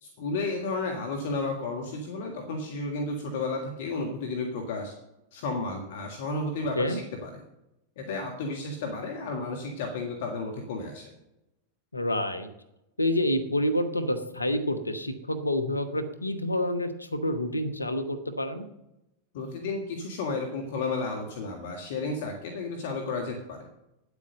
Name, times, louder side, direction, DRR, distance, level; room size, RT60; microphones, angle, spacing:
voice 1, 0.0-4.9 5.3-7.4 8.0-11.1 19.3-23.7, left 3 dB, 55° left, 3 dB, 1.7 m, -32 dB
voice 2, 11.9-12.5 13.0-18.6, left 1 dB, 85° left, 9 dB, 1.1 m, -28 dB
9.9 x 8.3 x 6.6 m, 0.89 s
figure-of-eight pair, 90°, 0 cm